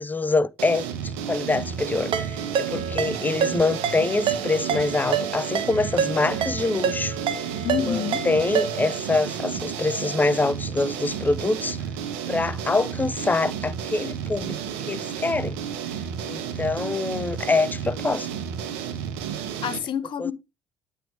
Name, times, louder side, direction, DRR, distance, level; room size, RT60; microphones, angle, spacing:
voice 1, 0.0-7.2 7.9-11.8 12.3-15.6 16.3-18.3 20.2-20.3, left 3 dB, 20° left, 0.5 m, -25 dB
sound 1, 0.6-19.8, right 8 dB, 85° right, 1.0 m, -32 dB
Ringtone, 2.1-9.0, right 8 dB, 60° right, 1.3 m, -28 dB
voice 2, 7.6-8.2 19.6-20.3, left 9 dB, 55° left, 0.8 m, -27 dB
9.2 x 3.4 x 4.7 m
hypercardioid pair, 60°, 10 cm